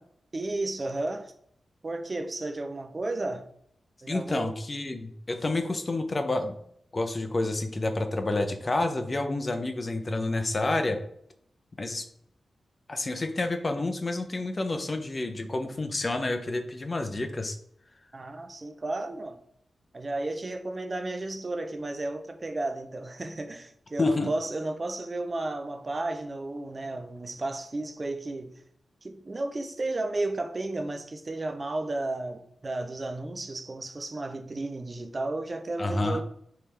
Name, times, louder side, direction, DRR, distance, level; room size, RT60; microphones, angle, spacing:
voice 1, 0.3-1.3 1.8-3.5 4.0-4.6 18.1-19.4 19.9-28.6 29.0-36.2, right 2 dB, 35° right, 0.5 m, -33 dB
voice 2, 4.1-6.6 6.9-11.0 11.8-12.1 12.9-17.6 24.0-24.3 35.8-36.2, left 2 dB, 35° left, 0.6 m, -29 dB
4.5 x 3.4 x 3.2 m
wide cardioid pair, 100°, 0 cm